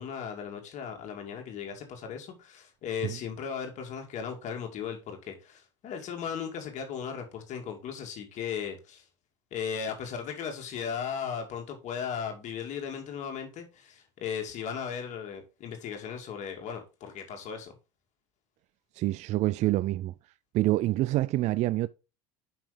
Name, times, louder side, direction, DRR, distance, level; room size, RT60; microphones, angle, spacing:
voice 1, 0.0-9.0 9.5-17.7, left 7 dB, 50° left, 2.2 m, -37 dB
voice 2, 18.9-20.1 20.5-21.9, right 16 dB, 50° right, 0.4 m, -26 dB
6.1 x 5.7 x 5.1 m
supercardioid pair, 105°, 16 cm